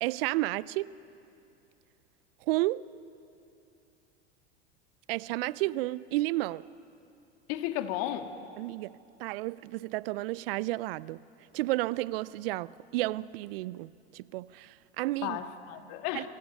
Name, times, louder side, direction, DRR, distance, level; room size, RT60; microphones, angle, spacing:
voice 1, 0.0-0.9 2.5-2.8 5.1-6.7 8.6-11.2 11.5-15.4 16.1-16.3, right 18 dB, 55° right, 0.6 m, -32 dB
voice 2, 7.5-8.3 15.2-16.3, left 12 dB, 55° left, 1.8 m, -33 dB
29.5 x 25.5 x 5.5 m
hypercardioid pair, 85°, 34 cm